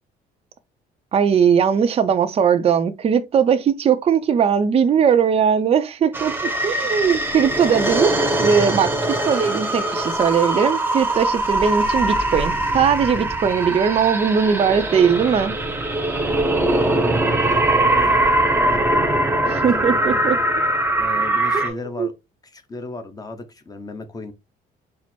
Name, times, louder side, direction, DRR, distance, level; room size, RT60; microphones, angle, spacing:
voice 1, 1.1-6.3 6.6-15.5 19.6-20.4 21.5-22.1, right 7 dB, 35° right, 0.5 m, -19 dB
sound 1, 6.1-21.7, right 1 dB, 10° right, 0.8 m, -21 dB
voice 2, 16.6-18.8 19.4-20.3 21.0-22.1 22.5-24.3, left 3 dB, 20° left, 0.8 m, -35 dB
4.4 x 2.0 x 4.3 m
cardioid pair, 110°, 17 cm